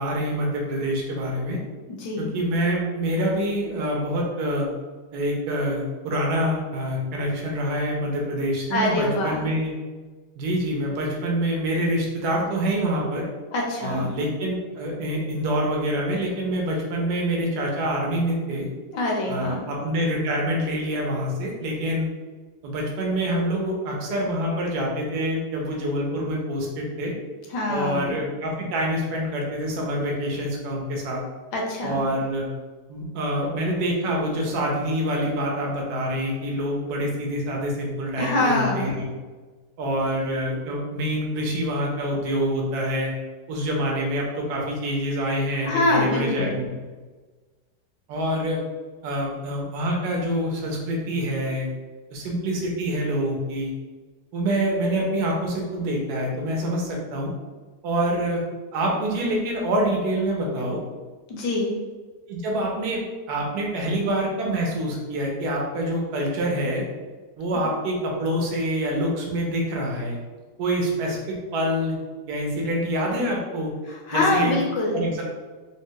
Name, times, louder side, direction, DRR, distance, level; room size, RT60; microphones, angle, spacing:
voice 1, 0.0-1.6 2.2-4.7 5.1-9.7 10.4-13.2 13.8-18.7 19.3-22.1 22.6-27.1 27.7-31.2 31.8-32.5 32.9-39.1 39.8-43.1 43.5-46.8 48.1-48.6 49.0-51.7 52.1-53.7 54.3-57.3 57.8-58.4 58.7-60.8 62.3-63.0 63.3-66.8 67.4-70.2 70.6-72.0 72.3-73.7 74.1-74.6 74.9-75.2, equal, 70° right, -1 dB, 1.2 m, -26 dB
voice 2, 1.9-2.3 8.7-9.4 13.5-14.1 18.9-19.6 27.5-28.2 31.5-32.0 38.2-38.9 45.6-46.6 61.3-61.7 73.9-75.0, left 2 dB, 80° left, -1 dB, 1.3 m, -24 dB
3.6 x 2.1 x 2.7 m, 1.3 s
omnidirectional pair, 1.9 m